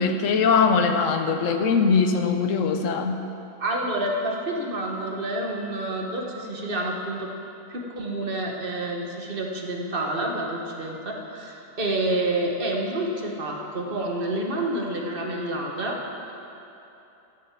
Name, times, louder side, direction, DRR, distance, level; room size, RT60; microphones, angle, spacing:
voice 1, 0.0-3.2, left 5 dB, 70° left, 6 dB, 1.2 m, -21 dB
voice 2, 3.6-7.3 7.7-16.0, right 1 dB, 40° right, 0 dB, 1.5 m, -28 dB
13.5 x 7.3 x 7.4 m, 2.9 s
omnidirectional pair, 1.4 m